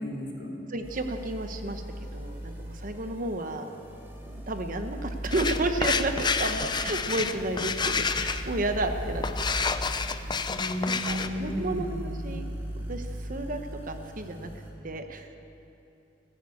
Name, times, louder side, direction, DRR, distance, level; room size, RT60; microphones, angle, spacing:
voice 1, 0.0-0.5 10.5-12.3, equal, 70° left, -2 dB, 3.0 m, -34 dB
voice 2, 0.7-1.8 2.1-3.7 4.2-9.7 10.8-12.5 12.9-14.5 14.8-15.3, right 2 dB, 50° right, 7 dB, 1.1 m, -32 dB
sound 1, 0.8-14.7, equal, 15° right, 2.5 m, -39 dB
sound 2, 5.3-11.3, left 5 dB, 25° left, 0.5 m, -30 dB
15.0 x 11.0 x 8.5 m, 2.8 s
head